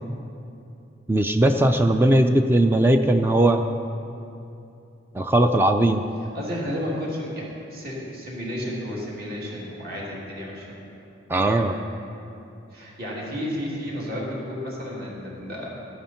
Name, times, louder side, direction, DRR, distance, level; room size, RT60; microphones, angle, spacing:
voice 1, 1.1-3.6 5.1-6.0 11.3-11.7, right 1 dB, 10° right, 6 dB, 0.4 m, -19 dB
voice 2, 6.3-10.8 11.5-11.7 12.7-15.7, equal, 50° right, -5 dB, 2.9 m, -32 dB
13.0 x 11.0 x 4.4 m, 2.7 s
head